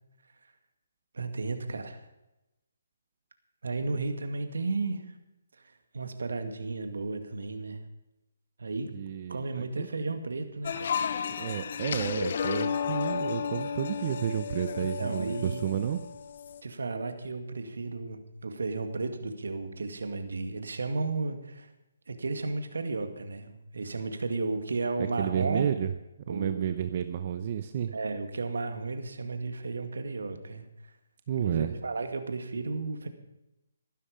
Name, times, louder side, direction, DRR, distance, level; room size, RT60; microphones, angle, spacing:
voice 1, 1.1-2.1 3.6-5.0 5.6-7.8 8.6-8.9 9.3-10.9 14.8-15.9 16.6-21.7 22.1-25.7 26.3-26.8 27.9-30.6 31.4-33.1, right 3 dB, 75° right, 7 dB, 2.2 m, -34 dB
voice 2, 8.9-9.9 11.4-16.0 25.0-25.9 26.3-27.9 31.3-31.8, right 9 dB, 40° right, 10 dB, 0.8 m, -31 dB
sound 1, 10.6-16.6, left 7 dB, 55° left, 1.0 m, -33 dB
15.0 x 12.5 x 5.2 m, 0.93 s
hypercardioid pair, 150°, 0 cm